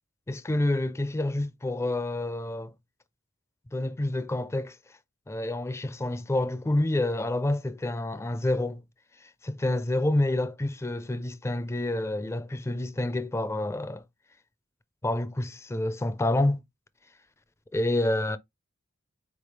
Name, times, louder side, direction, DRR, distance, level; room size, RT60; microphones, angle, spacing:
voice 1, 0.3-2.7 3.7-4.8 5.3-8.8 9.2-14.0 15.0-16.6 17.7-18.4, left 1 dB, 15° left, 0.4 m, -28 dB
4.3 x 3.4 x 3.2 m
head